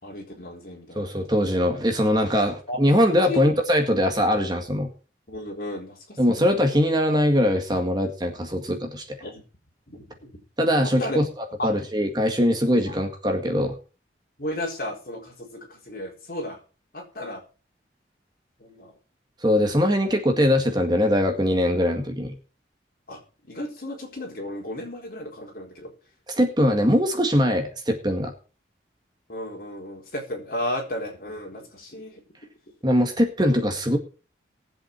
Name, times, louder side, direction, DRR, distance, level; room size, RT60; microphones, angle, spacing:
voice 1, 0.0-1.1 1.4-1.5 2.7-2.8 3.3-3.4 5.3-6.5 9.2-9.4 9.9-10.3 10.8-11.2 11.6-11.8 12.9-13.0 14.4-16.6 16.9-17.4 18.6-18.9 23.1-23.2 23.5-25.9 29.3-32.2, left 1 dB, 50° left, 0 dB, 4.2 m, -34 dB
voice 2, 1.0-4.9 6.2-9.2 10.6-11.2 11.6-13.8 19.4-22.3 26.3-28.3 32.8-34.0, equal, 25° right, 4 dB, 1.9 m, -22 dB
19.5 x 7.8 x 4.7 m, 0.35 s
head